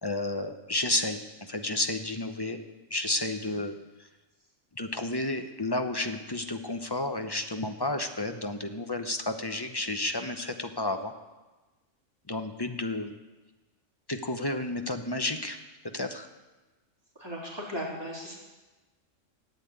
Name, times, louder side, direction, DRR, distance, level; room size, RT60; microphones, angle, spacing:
voice 1, 0.0-2.6 2.9-3.7 4.7-11.1 12.3-13.1 14.1-16.3, left 2 dB, 25° left, 6 dB, 0.7 m, -31 dB
voice 2, 17.2-18.3, equal, 20° right, -5 dB, 3.3 m, -37 dB
12.0 x 8.9 x 8.9 m, 1.2 s
omnidirectional pair, 1.3 m